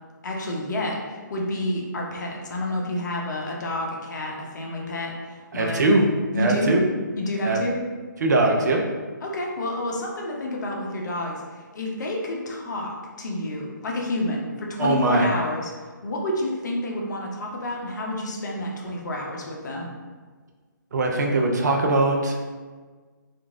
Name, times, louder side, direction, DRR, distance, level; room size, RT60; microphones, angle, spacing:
voice 1, 0.2-5.8 6.3-6.7 7.2-7.8 9.2-19.9, left 1 dB, 60° left, -1 dB, 0.7 m, -29 dB
voice 2, 5.5-6.1 6.3-6.8 7.4-7.6 8.2-8.8 14.8-15.3 20.9-22.4, right 2 dB, 55° right, 1 dB, 0.5 m, -21 dB
2.9 x 2.5 x 2.4 m, 1.4 s
figure-of-eight pair, 145°, 11 cm